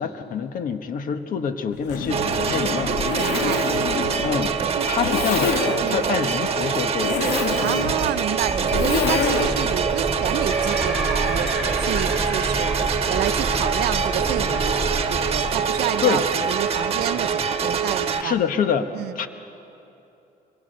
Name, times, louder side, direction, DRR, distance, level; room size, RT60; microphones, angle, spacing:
voice 1, 0.0-3.0 4.2-7.2 16.0-16.2 18.2-19.3, left 7 dB, 55° left, 8 dB, 1.4 m, -26 dB
Zipper (clothing), 1.8-9.7, left 5 dB, 90° left, 2.4 m, -27 dB
sound 1, 2.1-18.2, right 6 dB, 35° right, 1.6 m, -24 dB
voice 2, 3.2-3.7 4.8-4.9 5.8-6.0 7.6-11.4 11.8-12.8 13.1-18.3 18.9-19.1, right 13 dB, 75° right, 12 dB, 0.8 m, -29 dB
sound 2, 8.4-15.4, right 1 dB, ahead, 4.6 m, -29 dB
24.5 x 22.0 x 6.6 m, 2.9 s
cardioid pair, 110°, 17 cm